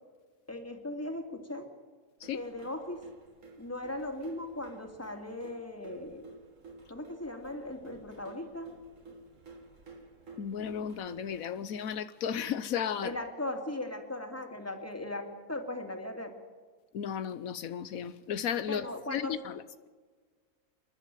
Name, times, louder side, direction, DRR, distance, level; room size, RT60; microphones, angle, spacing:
voice 1, 0.5-1.7 2.3-3.0 3.6-6.3 6.9-8.7 13.0-16.3 18.7-19.3, left 1 dB, 10° left, 4 dB, 2.7 m, -38 dB
sound 1, 2.2-11.4, right 2 dB, 65° right, 2.6 m, -53 dB
voice 2, 10.4-13.1 16.9-19.9, left 8 dB, 80° left, 13 dB, 1.2 m, -34 dB
28.0 x 11.5 x 9.1 m, 1.5 s
omnidirectional pair, 1.4 m